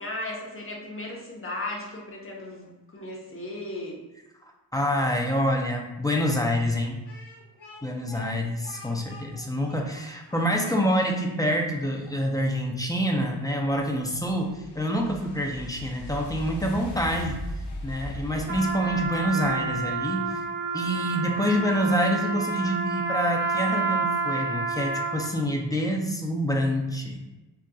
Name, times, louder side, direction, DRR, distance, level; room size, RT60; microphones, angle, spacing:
voice 1, 0.0-4.0, left 2 dB, 30° left, -2 dB, 0.8 m, -36 dB
voice 2, 4.7-7.0 7.8-17.4 17.8-20.4 20.7-27.2, equal, 10° left, 1 dB, 0.4 m, -27 dB
Speech, 7.0-12.1, left 3 dB, 90° left, 1.2 m, -48 dB
sound 1, 13.3-20.4, equal, 65° left, 0.7 m, -39 dB
Trumpet, 18.4-25.4, right 3 dB, 25° right, 0.8 m, -29 dB
3.7 x 2.4 x 2.3 m, 1.0 s
wide cardioid pair, 60°, 44 cm